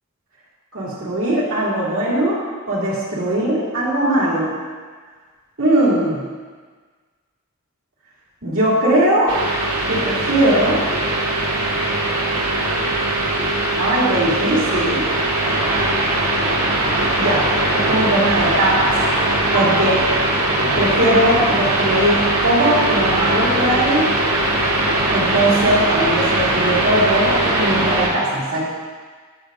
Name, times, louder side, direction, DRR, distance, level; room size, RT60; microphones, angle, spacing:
voice 1, 0.7-2.4 2.7-4.5 5.6-6.2 8.4-9.3 9.9-10.8 13.7-15.1 17.2-17.4 17.7-18.9 19.5-20.0 20.8-24.1 25.1-28.6, right 1 dB, 65° right, -6 dB, 2.7 m, -19 dB
sound 1, 9.3-28.1, right 2 dB, 80° right, 1.9 m, -20 dB
16.5 x 6.8 x 2.6 m, 1.5 s
head